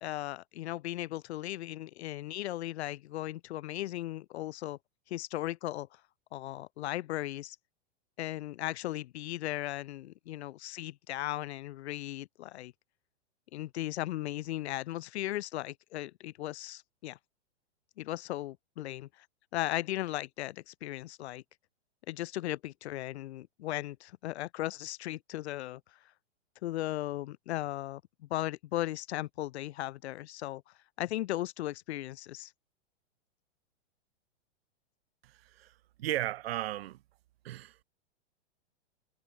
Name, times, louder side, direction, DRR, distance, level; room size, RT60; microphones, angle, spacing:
voice 1, 0.0-4.8 5.1-6.0 6.3-7.6 8.2-12.7 13.5-17.2 18.0-19.3 19.5-21.4 22.1-25.8 26.6-30.6 31.0-32.5, left 15 dB, 65° left, 0.6 m, -37 dB
voice 2, 35.2-35.7 36.0-37.0 37.4-37.8, right 14 dB, 55° right, 1.7 m, -35 dB
supercardioid pair, 160°, 35 cm